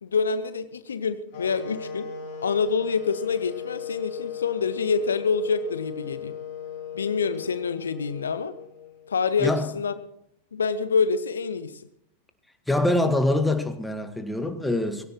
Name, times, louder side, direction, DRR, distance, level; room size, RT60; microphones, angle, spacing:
voice 1, 0.0-2.1 2.4-6.3 6.9-8.5 9.1-9.9 10.5-11.8, left 5 dB, 70° left, 0.7 m, -26 dB
sound 1, 1.3-9.3, left 8 dB, 50° left, 3.3 m, -37 dB
voice 2, 12.7-15.0, left 1 dB, 5° left, 1.7 m, -24 dB
21.5 x 16.5 x 3.1 m
figure-of-eight pair, 90°, 0 cm